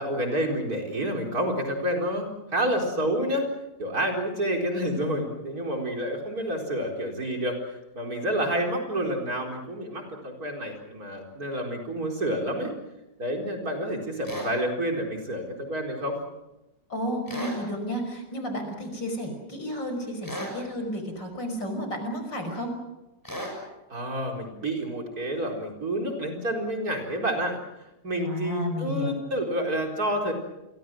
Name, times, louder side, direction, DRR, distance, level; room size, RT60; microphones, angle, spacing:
voice 1, 0.0-3.5 3.8-12.7 13.2-16.2 23.9-27.6 28.0-30.3, equal, 55° right, 2 dB, 4.8 m, -29 dB
sound 1, 14.2-14.5 17.3-17.6 20.2-20.6 23.2-23.6, equal, 10° left, 6.8 m, -34 dB
voice 2, 16.9-22.7 28.2-29.1, equal, 90° left, 5 dB, 6.2 m, -32 dB
29.5 x 23.0 x 6.3 m, 0.99 s
omnidirectional pair, 1.9 m